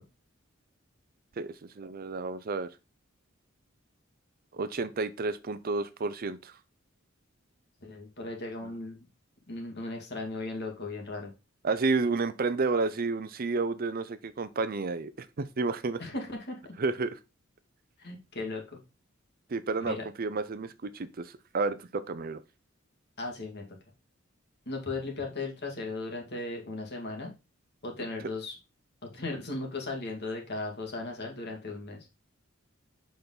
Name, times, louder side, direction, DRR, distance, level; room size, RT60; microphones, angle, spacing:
voice 1, 1.4-2.7 4.5-6.6 11.6-16.0 16.8-17.2 19.5-22.4, right 3 dB, 45° right, 0.6 m, -31 dB
voice 2, 7.8-9.1 9.5-11.3 16.0-16.6 18.0-18.8 19.9-20.1 23.2-23.6 24.7-27.3 27.8-28.6 29.0-32.0, left 2 dB, 55° left, 2.3 m, -37 dB
6.9 x 5.2 x 4.0 m
head